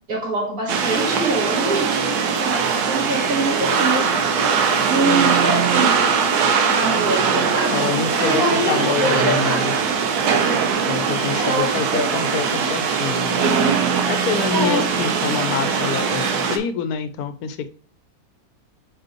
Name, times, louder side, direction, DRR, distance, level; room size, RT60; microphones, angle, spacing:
voice 1, 0.1-4.1 4.9-6.1 6.6-9.8 11.3-12.1 14.5-14.9, right 2 dB, 65° right, -1 dB, 2.4 m, -24 dB
sound 1, 0.7-16.6, right 6 dB, 85° right, 1.4 m, -20 dB
voice 2, 7.7-9.7 10.9-13.4 14.1-17.7, left 7 dB, 80° left, 10 dB, 1.1 m, -26 dB
5.1 x 4.5 x 4.5 m, 0.43 s
omnidirectional pair, 1.6 m